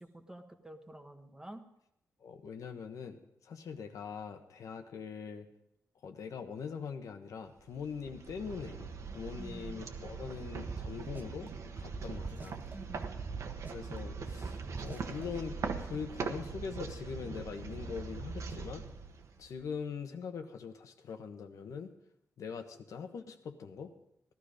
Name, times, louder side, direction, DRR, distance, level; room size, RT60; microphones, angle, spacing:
voice 1, 0.0-1.6 9.4-9.8 12.7-13.2, right 1 dB, 10° right, 5 dB, 1.2 m, -49 dB
voice 2, 2.2-5.5 6.0-12.6 13.7-18.8 19.4-21.9 22.4-23.9, left 6 dB, 75° left, 6 dB, 1.3 m, -42 dB
sound 1, 7.6-19.7, right 4 dB, 65° right, 1.3 m, -41 dB
sound 2, 10.5-11.5 11.8-12.7 13.0-14.0 14.3-15.2, right 5 dB, 30° right, 0.5 m, -43 dB
16.0 x 12.5 x 5.1 m, 0.77 s
wide cardioid pair, 145°, 6 cm